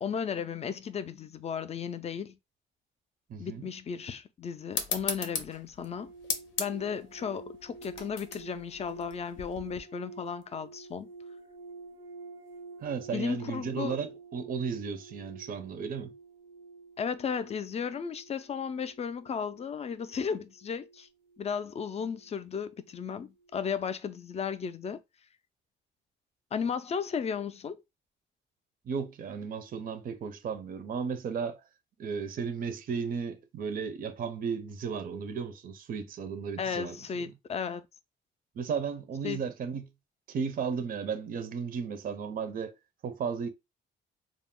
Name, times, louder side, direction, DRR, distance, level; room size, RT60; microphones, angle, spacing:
voice 1, 0.0-2.4 3.4-6.1 6.6-11.1 13.1-14.0 17.0-21.1 21.4-25.0 26.5-27.8 36.6-37.9 39.2-39.4, left 6 dB, 35° left, 0.4 m, -35 dB
voice 2, 3.3-3.6 12.8-16.1 28.8-31.6 32.0-37.0 37.3-37.4 38.6-39.9 40.3-42.7 43.0-43.5, right 6 dB, 45° right, 0.5 m, -34 dB
sound 1, 4.7-9.8, left 6 dB, 85° left, 0.6 m, -37 dB
sound 2, 5.8-23.1 23.4-23.8, right 3 dB, 90° right, 0.7 m, -50 dB
2.3 x 2.0 x 3.6 m
cardioid pair, 90°, 20 cm